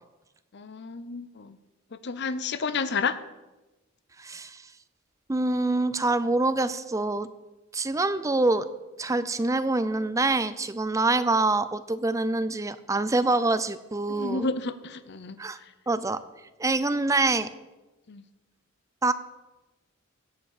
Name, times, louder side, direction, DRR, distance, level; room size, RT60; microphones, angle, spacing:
voice 1, 0.5-1.6 1.9-3.2 14.1-15.4 18.1-18.2, left 4 dB, 55° left, 13 dB, 0.7 m, -31 dB
voice 2, 4.2-4.6 5.3-7.3 7.7-8.7 9.0-14.5 15.4-15.6 15.9-16.2 16.6-17.5 19.0-19.1, right 2 dB, 15° right, 13 dB, 0.5 m, -25 dB
16.5 x 5.8 x 6.5 m, 1.1 s
head